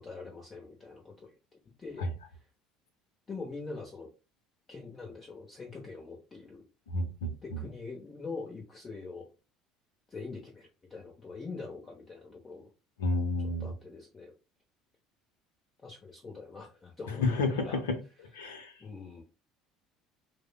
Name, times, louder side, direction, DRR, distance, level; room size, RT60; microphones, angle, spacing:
voice 1, 0.0-1.3 1.8-2.1 3.3-4.1 4.7-6.6 7.4-9.3 10.1-12.7 13.4-14.3 15.8-17.8 18.8-19.2, left 4 dB, 30° left, 0.8 m, -43 dB
voice 2, 6.9-7.6 13.0-13.7 17.1-18.0 18.3-18.7, left 2 dB, 75° left, 0.6 m, -31 dB
4.8 x 2.1 x 2.2 m
figure-of-eight pair, 60°, 0 cm